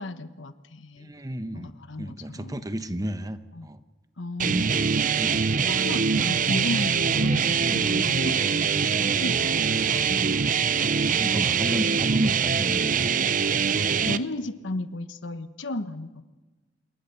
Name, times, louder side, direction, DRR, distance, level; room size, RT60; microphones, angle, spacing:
voice 1, 0.0-1.1 1.5-2.6 3.5-3.7 4.2-5.3 5.6-10.0 14.1-16.2, left 2 dB, 80° left, 11 dB, 1.1 m, -35 dB
voice 2, 1.0-1.7 2.0-3.8 5.1-5.4 7.6-7.9 10.8-13.1 13.4-13.6, right 1 dB, 20° right, 10 dB, 1.1 m, -33 dB
sound 1, 4.4-14.2, right 6 dB, 45° right, 0.7 m, -23 dB
27.5 x 22.5 x 6.9 m, 1.2 s
head